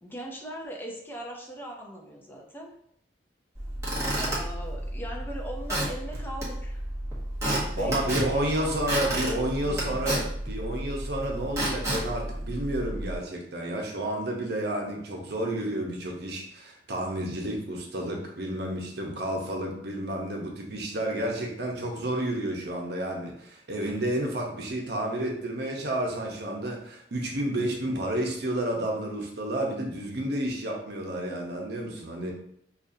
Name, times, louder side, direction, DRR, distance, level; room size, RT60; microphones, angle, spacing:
voice 1, 0.0-2.7 4.2-6.8 7.7-10.0, equal, 10° left, 0 dB, 0.5 m, -40 dB
Squeak / Wood, 3.5-13.2, right 1 dB, 15° right, 1.1 m, -31 dB
voice 2, 7.8-32.3, right 1 dB, 65° right, 0 dB, 0.9 m, -31 dB
5.3 x 2.4 x 2.7 m, 0.69 s
head